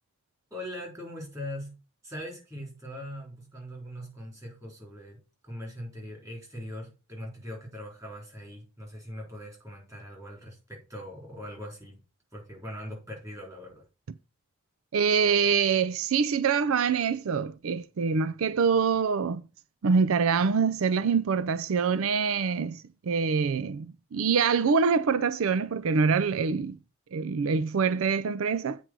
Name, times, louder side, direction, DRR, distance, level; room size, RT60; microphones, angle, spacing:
voice 1, 0.5-1.8 2.0-5.2 5.4-12.0 12.3-13.8, equal, 15° right, 3.6 m, -41 dB
voice 2, 14.9-19.4 19.8-26.8 27.1-28.8, right 5 dB, 75° right, 0.4 m, -25 dB
8.1 x 4.7 x 6.1 m
head